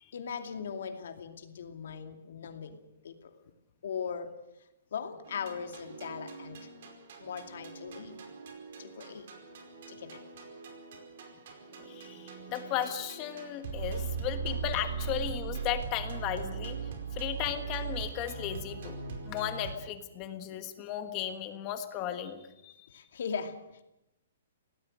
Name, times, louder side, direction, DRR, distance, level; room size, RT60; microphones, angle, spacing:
voice 1, 0.1-3.4 3.8-4.3 4.9-6.7 7.2-8.2 8.8-9.3 9.9-10.2 22.9-23.6, left 6 dB, 65° left, 5 dB, 2.6 m, -39 dB
sound 1, 5.3-19.9, right 6 dB, 50° right, 4.8 m, -40 dB
voice 2, 11.8-19.0 19.2-22.9, left 10 dB, 25° left, 8 dB, 1.5 m, -36 dB
25.5 x 18.5 x 6.6 m, 0.89 s
hypercardioid pair, 170°, 0 cm